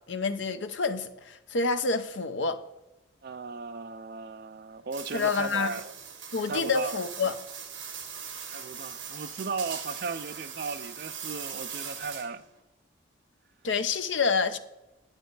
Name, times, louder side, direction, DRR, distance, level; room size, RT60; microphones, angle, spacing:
voice 1, 0.1-2.6 5.1-5.8 6.3-7.3 13.6-14.6, left 4 dB, 65° left, 0.7 m, -28 dB
voice 2, 3.2-5.9 6.5-7.0 8.5-12.4, right 4 dB, 50° right, 0.5 m, -36 dB
sound 1, 4.9-12.5, right 7 dB, 70° right, 2.0 m, -40 dB
9.2 x 8.9 x 4.0 m
head